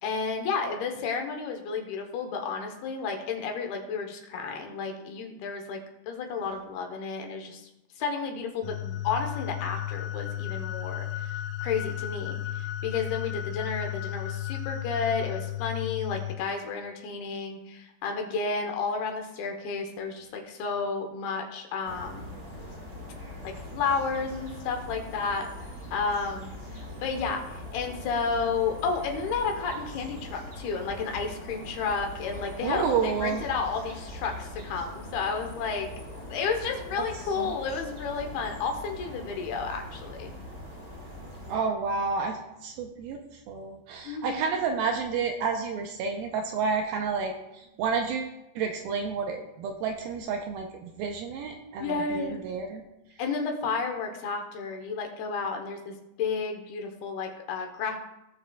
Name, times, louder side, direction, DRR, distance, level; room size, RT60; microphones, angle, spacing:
voice 1, 0.0-5.8 6.1-7.7 8.0-22.4 23.4-25.5 25.9-35.9 36.3-40.3 44.0-44.4 47.8-47.9 51.8-52.4 53.2-58.0, left 5 dB, 75° left, 3 dB, 2.8 m, -32 dB
sound 1, 8.6-16.4, left 13 dB, 90° left, 2.8 m, -34 dB
sound 2, 21.8-41.6, left 1 dB, 35° right, 2.1 m, -42 dB
voice 2, 32.6-33.4 37.4-37.5 41.5-52.8, right 5 dB, 80° right, 3 dB, 2.3 m, -30 dB
18.5 x 6.7 x 2.3 m, 0.90 s
omnidirectional pair, 4.8 m